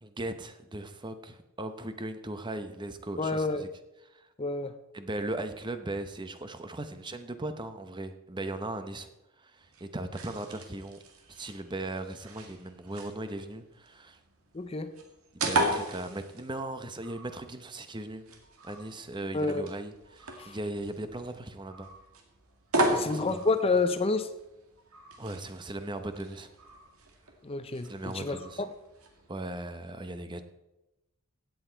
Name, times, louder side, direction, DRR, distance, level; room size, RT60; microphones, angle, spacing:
voice 1, 0.0-3.7 4.0-4.3 4.9-9.1 9.4-11.0 11.3-14.2 15.3-18.2 18.6-21.9 22.8-23.4 25.2-26.5 27.9-28.6 29.3-30.4, right 2 dB, 20° right, 9 dB, 0.8 m, -38 dB
voice 2, 3.2-3.6 4.4-4.7 14.5-14.9 19.3-19.7 20.4-20.5 22.9-24.3 27.4-28.4, left 3 dB, 25° left, 10 dB, 0.6 m, -28 dB
sound 1, 9.6-29.3, right 1 dB, 80° right, 2.1 m, -37 dB
16.5 x 8.1 x 4.5 m, 0.94 s
head